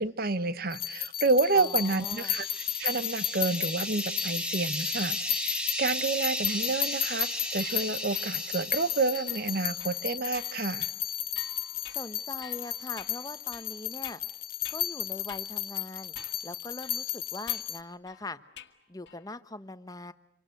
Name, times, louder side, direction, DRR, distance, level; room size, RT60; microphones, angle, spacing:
voice 1, 0.0-2.4 2.8-10.9, right 3 dB, 55° right, 14 dB, 1.1 m, -29 dB
sound 1, 0.7-17.8, left 13 dB, 50° left, 1.1 m, -34 dB
voice 2, 1.5-2.4 11.9-14.2 14.7-16.1 16.4-18.4 18.9-20.1, left 2 dB, 20° left, 12 dB, 1.0 m, -41 dB
sound 2, 1.7-9.5, equal, 5° right, 2.0 m, -36 dB
sound 3, 1.8-3.4 6.5-15.0 15.3-15.5 16.1-16.5 16.8-18.8 19.1-19.4, left 8 dB, 65° left, 1.8 m, -51 dB
26.5 x 25.0 x 7.9 m, 0.83 s
head